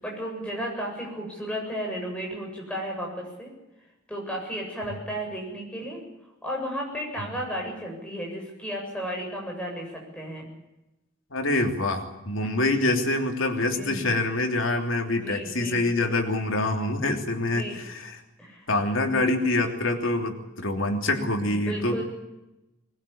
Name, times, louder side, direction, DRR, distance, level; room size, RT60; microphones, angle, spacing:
voice 1, 0.0-3.5 4.1-6.0 6.4-10.5 13.7-14.0 15.0-15.9 17.4-17.8 18.4-18.7 21.4-22.0, equal, 5° left, -1 dB, 7.7 m, -34 dB
voice 2, 11.3-18.2 18.7-22.0, left 2 dB, 75° left, 4 dB, 3.1 m, -26 dB
21.5 x 20.5 x 8.7 m, 0.96 s
head